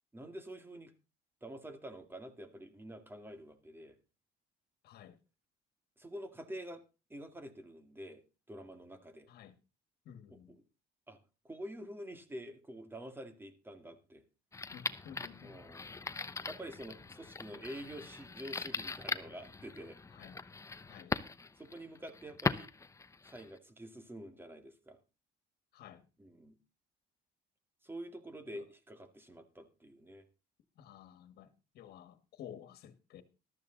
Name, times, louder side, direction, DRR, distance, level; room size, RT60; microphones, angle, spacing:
voice 1, 0.1-0.9 1.4-4.0 6.0-6.8 7.1-9.3 10.3-10.6 11.1-11.2 11.4-14.2 15.4-15.9 16.5-20.0 21.6-22.7 23.2-25.0 26.2-26.6 27.8-30.3, right 1 dB, 15° right, 2.3 m, -47 dB
voice 2, 4.8-5.2 9.3-9.6 10.1-10.6 14.7-15.6 20.1-20.4 20.9-21.2 25.7-26.0 28.5-28.6 30.8-33.2, left 9 dB, 70° left, 1.8 m, -52 dB
sound 1, 14.5-23.6, left 4 dB, 15° left, 0.9 m, -40 dB
14.0 x 12.5 x 4.0 m
cardioid pair, 110°, 17 cm